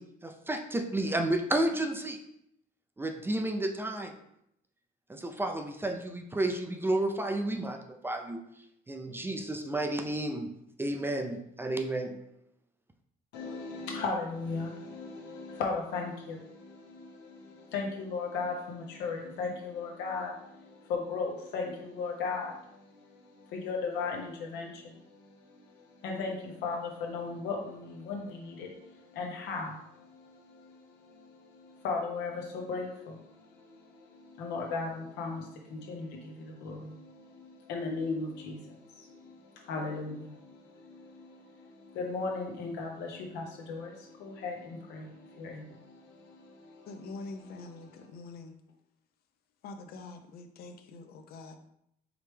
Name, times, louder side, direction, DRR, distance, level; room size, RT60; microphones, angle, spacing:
voice 1, 0.0-2.2 3.0-4.2 5.1-8.4 8.9-10.5 10.8-12.2, right 1 dB, 15° right, 5 dB, 0.4 m, -31 dB
voice 2, 13.3-46.9 47.8-48.0, left 4 dB, 85° left, 0 dB, 1.1 m, -37 dB
voice 3, 46.9-48.6 49.6-51.6, left 3 dB, 65° left, 7 dB, 0.6 m, -45 dB
4.9 x 3.2 x 3.3 m, 0.75 s
cardioid pair, 110°, 17 cm